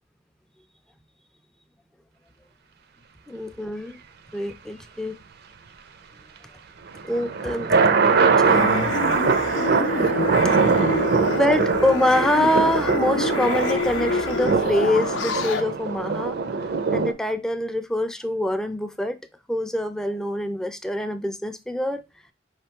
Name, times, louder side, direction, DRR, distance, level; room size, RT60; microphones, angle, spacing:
voice 1, 3.3-4.0 4.3-5.2 7.0-8.9 11.4-19.2 19.5-22.0, left 1 dB, 5° left, 0.3 m, -25 dB
sound 1, 6.9-17.1, right 4 dB, 55° right, 0.5 m, -22 dB
sound 2, 8.4-15.6, left 3 dB, 75° left, 0.5 m, -28 dB
4.9 x 3.3 x 2.8 m
head